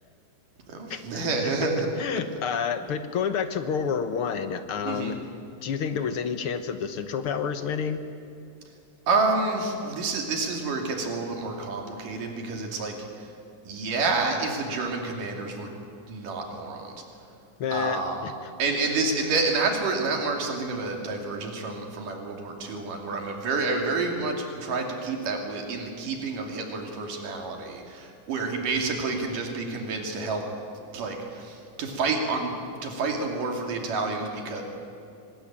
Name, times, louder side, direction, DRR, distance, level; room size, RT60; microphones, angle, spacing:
voice 1, 0.7-1.9 4.9-5.2 9.1-13.3 13.7-15.7 16.1-16.9 17.7-18.2 18.6-30.4 30.9-34.6, right 3 dB, 80° right, 2 dB, 4.3 m, -29 dB
voice 2, 2.0-5.2 5.6-8.1 17.6-18.3, left 6 dB, 65° left, 9 dB, 1.4 m, -29 dB
24.5 x 20.5 x 8.9 m, 2.6 s
omnidirectional pair, 3.7 m